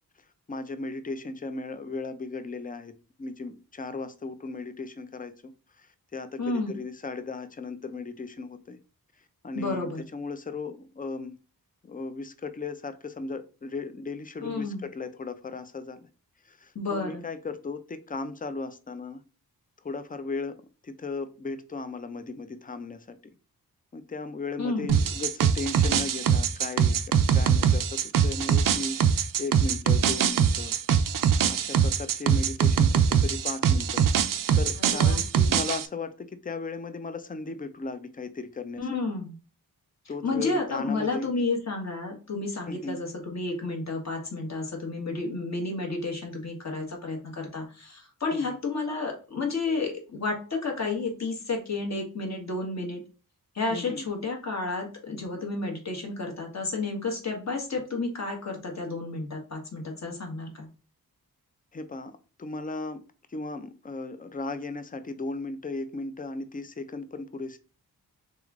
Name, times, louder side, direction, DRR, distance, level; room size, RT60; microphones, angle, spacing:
voice 1, 0.5-2.9 3.2-5.5 5.8-5.9 6.1-8.8 9.4-11.4 11.8-16.1 16.5-19.2 19.8-20.6 20.8-23.3 23.9-30.8 31.5-34.1 34.5-39.0 40.1-41.3 42.7-43.0 48.3-48.6 53.7-54.0 61.7-62.1 62.4-63.0 63.3-67.6, left 3 dB, 25° left, 0.5 m, -36 dB
voice 2, 6.4-6.7 9.5-10.0 14.4-14.8 16.7-17.2 24.6-24.9 34.8-35.2 38.8-39.4 40.2-53.0 53.5-60.7, left 3 dB, 45° left, 1.4 m, -31 dB
sound 1, 24.9-35.9, right 7 dB, 60° right, 0.5 m, -23 dB
3.5 x 3.5 x 3.6 m
wide cardioid pair, 95°, 37 cm